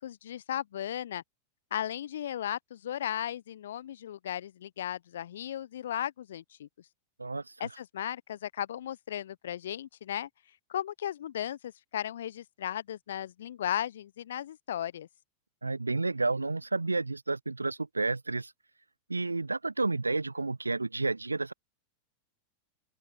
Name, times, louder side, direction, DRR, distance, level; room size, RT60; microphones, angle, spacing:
voice 1, 0.0-1.2 1.7-6.7 7.6-10.3 10.7-15.1, left 11 dB, 60° left, 1.1 m, -36 dB
voice 2, 15.6-18.5 19.1-21.5, right 3 dB, 80° right, 0.5 m, -31 dB
open air
figure-of-eight pair, 90°, 0 cm